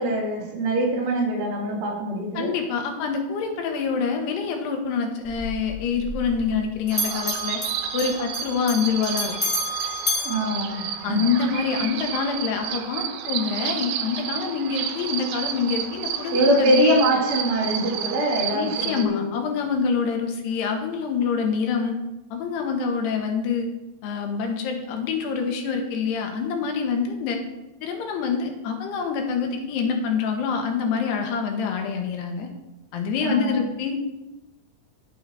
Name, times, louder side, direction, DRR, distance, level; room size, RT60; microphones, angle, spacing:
voice 1, 0.0-2.5 10.2-11.3 16.3-19.3 33.2-33.6, right 1 dB, 40° right, -3 dB, 2.4 m, -23 dB
voice 2, 2.4-7.6 7.9-9.3 11.0-17.0 18.5-22.0 22.3-23.7 24.0-27.4 27.8-32.5 32.9-34.0, left 5 dB, 90° left, 3 dB, 3.4 m, -26 dB
Bell, 5.2-6.6 6.9-11.4, left 1 dB, 65° left, 0.4 m, -31 dB
sound 1, 6.9-19.0, right 9 dB, 80° right, 2.8 m, -31 dB
10.5 x 8.6 x 4.1 m, 0.97 s
omnidirectional pair, 4.6 m